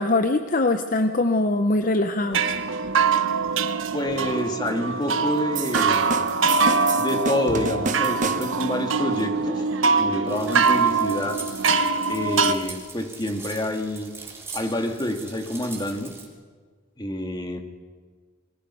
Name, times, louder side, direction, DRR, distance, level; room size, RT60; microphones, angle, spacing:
voice 1, 0.0-2.5, left 2 dB, 45° left, 7 dB, 0.8 m, -22 dB
sound 1, 2.2-12.5, right 4 dB, 75° right, 1.1 m, -23 dB
voice 2, 3.9-6.3 6.9-9.6 10.0-11.4 12.1-14.1 14.5-16.1 17.0-17.6, left 1 dB, 20° left, 5 dB, 2.1 m, -28 dB
sound 2, 5.5-8.8, right 3 dB, 40° right, 1.0 m, -30 dB
sound 3, 10.3-16.3, right 4 dB, 15° right, 3.3 m, -41 dB
27.5 x 23.0 x 5.6 m, 1.6 s
head